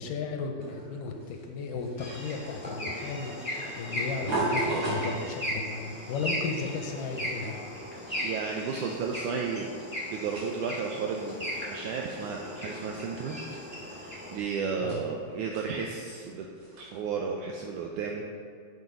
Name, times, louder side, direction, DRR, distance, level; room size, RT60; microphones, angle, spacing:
voice 1, 0.0-7.6 14.8-15.0, left 4 dB, 80° left, 3 dB, 2.1 m, -35 dB
sound 1, 0.6-17.1, right 2 dB, 65° right, 3.7 m, -40 dB
sound 2, 2.0-14.4, left 1 dB, 5° right, 0.9 m, -37 dB
voice 2, 8.1-9.7 10.1-13.4 13.9-18.3, right 5 dB, 85° right, 1 dB, 1.7 m, -33 dB
6.8 x 6.6 x 4.8 m, 2.3 s
omnidirectional pair, 4.1 m